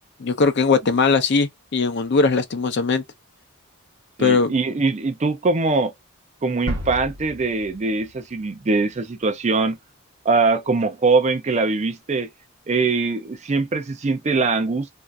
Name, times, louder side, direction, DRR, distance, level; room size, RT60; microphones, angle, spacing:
voice 1, 0.2-3.0 4.2-4.5, left 4 dB, 50° left, 0.5 m, -19 dB
voice 2, 4.2-5.9 6.4-9.8 10.2-12.3 12.7-15.0, right 3 dB, 30° right, 0.4 m, -22 dB
sound 1, 6.7-9.3, equal, 50° right, 1.0 m, -34 dB
2.6 x 2.4 x 3.1 m
head